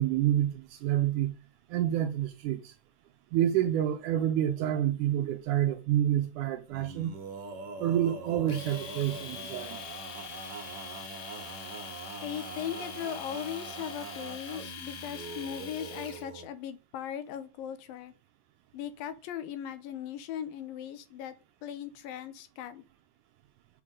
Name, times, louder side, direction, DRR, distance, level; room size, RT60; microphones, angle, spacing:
voice 1, 0.0-1.4 1.7-2.7 3.3-7.1 7.8-9.8, right 11 dB, 75° right, 1.9 m, -28 dB
Male singing, 6.7-16.5, right 4 dB, 55° right, 2.1 m, -43 dB
Domestic sounds home sounds, 8.5-16.2, left 8 dB, 60° left, 1.5 m, -44 dB
voice 2, 12.2-18.1 18.7-21.3 21.6-22.8, left 10 dB, 85° left, 2.6 m, -38 dB
7.5 x 5.6 x 4.9 m
omnidirectional pair, 3.9 m